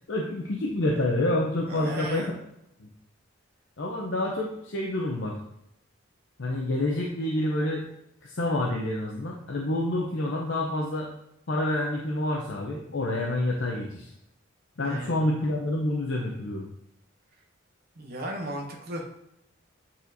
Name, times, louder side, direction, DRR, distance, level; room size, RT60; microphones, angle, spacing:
voice 1, 0.1-2.3 2.8-2.9 3.8-5.4 6.4-7.8 8.2-11.1 11.5-14.1 14.8-16.7, left 1 dB, 65° left, -2 dB, 0.7 m, -28 dB
voice 2, 1.7-2.3 14.8-15.2 18.0-19.0, right 1 dB, 50° right, 1 dB, 0.9 m, -35 dB
8.6 x 4.3 x 2.7 m, 0.82 s
head